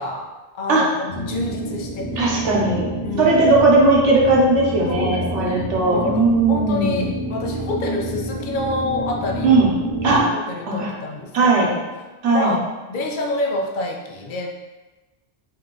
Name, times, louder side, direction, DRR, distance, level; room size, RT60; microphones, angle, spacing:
voice 1, 0.0-2.4 3.0-3.3 4.8-9.6 10.0-11.9 12.3-14.5, left 2 dB, 55° left, 2 dB, 0.6 m, -28 dB
sound 1, 1.1-10.2, right 1 dB, 30° left, 0.9 m, -28 dB
voice 2, 2.2-2.9 3.2-7.0 9.4-9.7 10.0-10.2 10.7-10.9 11.3-11.7 12.2-12.6, right 3 dB, 90° right, -3 dB, 1.2 m, -17 dB
3.6 x 2.8 x 3.8 m, 1.2 s
omnidirectional pair, 1.2 m